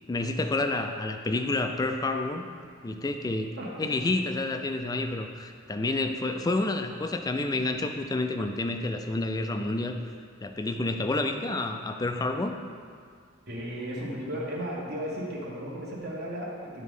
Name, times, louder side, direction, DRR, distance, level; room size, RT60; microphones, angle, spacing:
voice 1, 0.1-2.4 2.8-3.5 3.8-10.0 10.4-12.5, left 2 dB, 20° left, 6 dB, 0.3 m, -29 dB
voice 2, 3.6-3.9 13.5-16.8, equal, 50° right, -3 dB, 1.2 m, -35 dB
10.5 x 3.6 x 3.6 m, 2.1 s
head